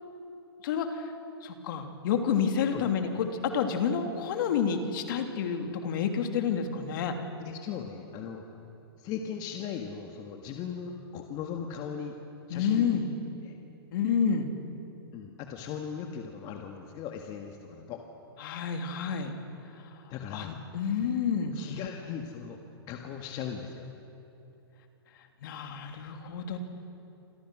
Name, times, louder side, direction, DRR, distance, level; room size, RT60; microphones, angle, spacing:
voice 1, 0.6-1.0 1.4-7.2 12.5-13.1 13.9-14.5 18.4-19.3 20.3-21.5 25.4-26.6, left 7 dB, 55° left, 5 dB, 3.1 m, -29 dB
voice 2, 7.4-8.4 9.0-12.2 12.5-13.0 13.5-13.6 15.1-18.0 20.1-20.6 21.5-22.6 22.9-23.8 26.5-26.6, left 7 dB, 30° left, 3 dB, 1.8 m, -38 dB
28.5 x 27.0 x 6.3 m, 2.9 s
hypercardioid pair, 135°, 13 cm